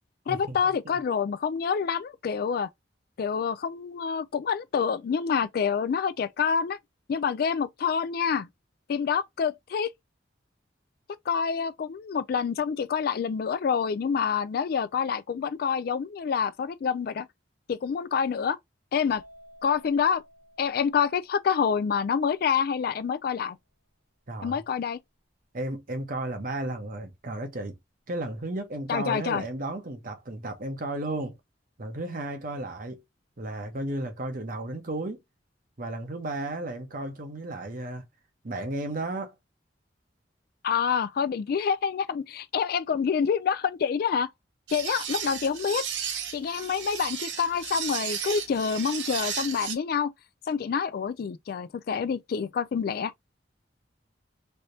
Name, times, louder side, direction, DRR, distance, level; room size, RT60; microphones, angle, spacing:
voice 1, 0.3-2.7 3.2-6.8 7.1-8.5 8.9-9.9 11.3-17.3 17.7-18.6 18.9-19.2 19.6-20.2 20.6-23.6 24.4-25.0 28.9-29.4 40.6-44.3 44.7-45.8 46.3-50.1 50.5-53.1, left 6 dB, 55° left, 0.3 m, -27 dB
sound 1, 19.1-22.7, equal, 35° left, 1.2 m, -55 dB
voice 2, 24.3-24.6 25.5-27.8 28.1-31.4 31.8-33.0 33.4-35.2 35.8-38.0 38.4-39.3, right 1 dB, 50° right, 0.9 m, -33 dB
sound 2, 44.7-49.8, right 8 dB, 80° right, 0.8 m, -34 dB
3.3 x 2.7 x 2.7 m
head